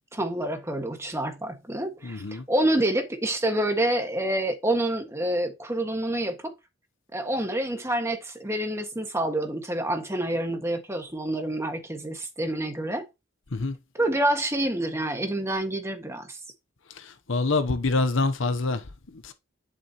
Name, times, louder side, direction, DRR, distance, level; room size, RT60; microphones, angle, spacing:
voice 1, 0.1-6.5 7.1-13.0 14.0-16.4, right 1 dB, 15° right, 1.7 m, -27 dB
voice 2, 2.0-2.5 13.5-13.8 16.9-19.3, left 3 dB, 60° left, 0.9 m, -27 dB
11.5 x 6.9 x 3.0 m
head